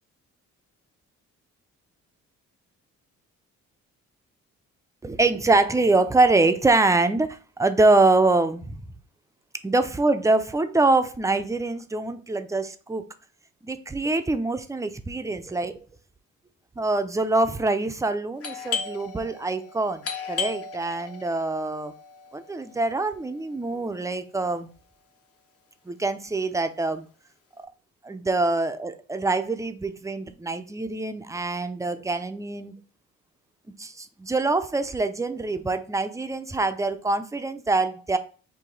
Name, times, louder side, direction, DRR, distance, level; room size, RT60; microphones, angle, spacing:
voice 1, 5.0-8.8 9.6-13.0 13.6-15.8 16.8-20.0 20.3-21.9 22.3-24.7 25.9-27.1 28.0-32.7 33.8-38.2, right 2 dB, 10° right, 0.4 m, -24 dB
Doorbell, 18.4-23.9, left 6 dB, 50° left, 0.9 m, -36 dB
4.8 x 2.7 x 3.9 m
cardioid pair, 90°, 30 cm